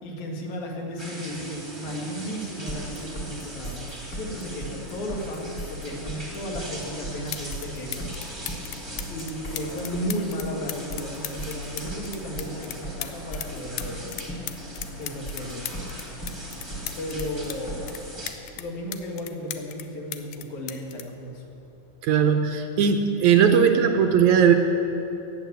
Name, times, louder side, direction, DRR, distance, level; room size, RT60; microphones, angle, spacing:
voice 1, 0.0-8.1 9.1-14.1 15.0-15.7 17.0-17.9 18.6-21.5, equal, 65° left, 0 dB, 3.1 m, -34 dB
sound 1, 1.0-18.3, equal, 10° right, 1.5 m, -41 dB
sound 2, 2.7-18.0, right 1 dB, 35° left, 2.5 m, -37 dB
sound 3, 6.8-6.9 7.3-7.7 7.9-13.5 13.8-17.6 17.9-19.9 20.1-22.0 22.9-23.1, left 13 dB, 80° left, 2.2 m, -37 dB
voice 2, 22.0-24.6, right 7 dB, 75° right, 6 dB, 2.0 m, -18 dB
14.0 x 10.0 x 8.0 m, 2.9 s
omnidirectional pair, 3.8 m